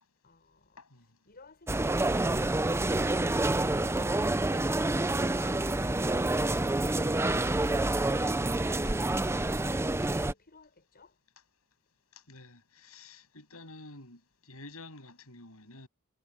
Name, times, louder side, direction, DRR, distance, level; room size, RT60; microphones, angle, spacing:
voice 1, 0.2-3.3, left 3 dB, 45° left, 6.6 m, -57 dB
sound 1, 1.7-10.3, right 2 dB, 10° right, 0.5 m, -28 dB
voice 2, 12.1-15.9, left 2 dB, 70° left, 7.9 m, -50 dB
head